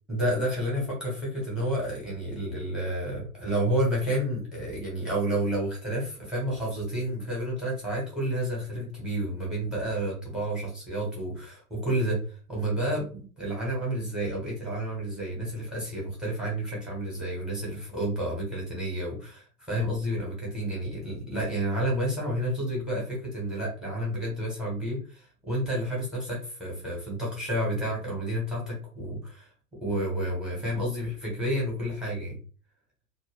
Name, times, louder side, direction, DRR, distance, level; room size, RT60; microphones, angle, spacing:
voice 1, 0.1-29.5 29.8-32.4, right 1 dB, ahead, -3 dB, 0.7 m, -30 dB
2.2 x 2.2 x 3.2 m, 0.38 s
figure-of-eight pair, 110°, 44 cm